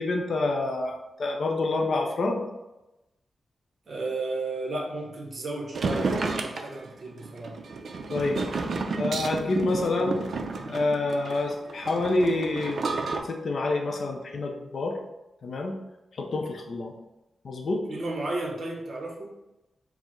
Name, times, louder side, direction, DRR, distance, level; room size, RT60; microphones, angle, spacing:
voice 1, 0.0-2.4 8.1-8.4 9.0-10.2 10.7-12.8 13.3-15.0 15.4-15.7 16.2-16.9 17.4-17.9, left 2 dB, 55° left, 2 dB, 0.5 m, -27 dB
voice 2, 3.9-7.6 17.9-19.3, right 2 dB, 45° right, -1 dB, 0.8 m, -33 dB
sound 1, 5.7-13.2, right 3 dB, 60° right, 0.4 m, -31 dB
4.5 x 2.0 x 4.3 m, 0.98 s
wide cardioid pair, 175°, 0 cm